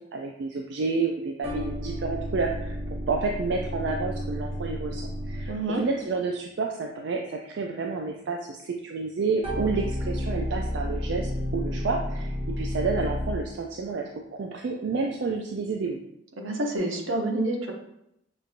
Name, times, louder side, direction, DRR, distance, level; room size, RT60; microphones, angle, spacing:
voice 1, 0.0-2.8 3.1-16.0, right 4 dB, 60° right, 1 dB, 0.3 m, -30 dB
FM House Synth, 1.4-5.9 9.4-13.6, equal, 30° right, 0.8 m, -31 dB
voice 2, 5.5-5.8 16.4-17.7, right 1 dB, 80° right, 2 dB, 0.8 m, -28 dB
6.0 x 2.7 x 2.5 m, 0.80 s
head